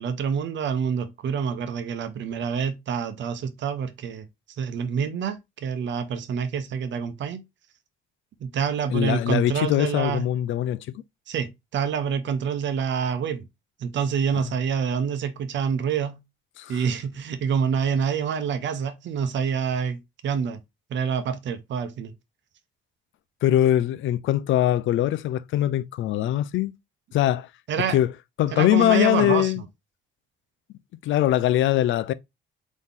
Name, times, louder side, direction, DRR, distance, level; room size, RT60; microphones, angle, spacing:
voice 1, 0.0-4.3 4.6-7.4 8.4-10.2 11.3-13.5 13.8-16.2 16.7-20.6 20.9-22.1 27.7-28.0 28.5-29.6, right 7 dB, 70° right, 0.8 m, -27 dB
voice 2, 8.9-10.9 16.6-16.8 23.4-26.7 27.1-27.5 27.9-28.1 28.4-29.6 31.0-32.1, left 13 dB, 75° left, 0.5 m, -22 dB
4.1 x 3.0 x 3.6 m
cardioid pair, 90°, 20 cm